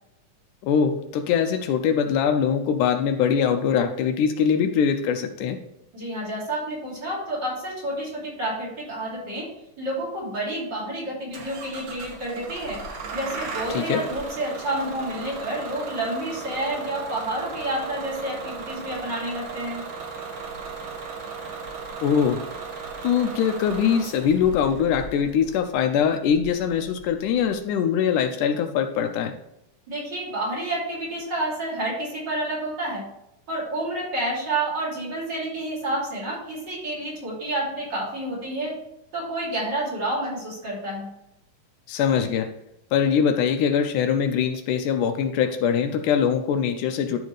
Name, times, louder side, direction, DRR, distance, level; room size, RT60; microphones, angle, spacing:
voice 1, 0.6-5.6 13.7-14.0 22.0-22.4 23.0-29.3 41.9-42.5 42.9-47.2, left 7 dB, 80° left, 7 dB, 2.1 m, -22 dB
voice 2, 5.9-9.5 9.8-12.8 13.1-19.8 29.9-33.0 33.5-38.8 39.1-41.1, right 1 dB, 35° right, -5 dB, 3.4 m, -29 dB
Bus / Engine starting, 11.3-27.5, right 4 dB, 75° right, 2.9 m, -36 dB
13.0 x 4.4 x 3.3 m, 0.82 s
omnidirectional pair, 3.7 m